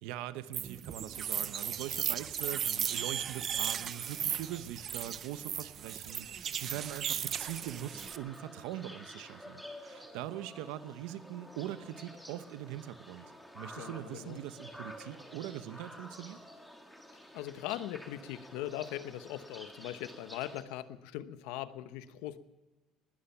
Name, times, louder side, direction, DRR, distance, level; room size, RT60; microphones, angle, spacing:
voice 1, 0.0-16.4, right 12 dB, 85° right, 13 dB, 0.9 m, -42 dB
sound 1, 0.5-8.2, right 9 dB, 30° right, 0.6 m, -36 dB
sound 2, 7.2-20.6, equal, ahead, 1.7 m, -50 dB
voice 2, 13.8-14.4 17.3-22.4, left 13 dB, 90° left, 12 dB, 1.0 m, -40 dB
19.5 x 13.0 x 5.7 m, 1.1 s
cardioid pair, 175°, 0 cm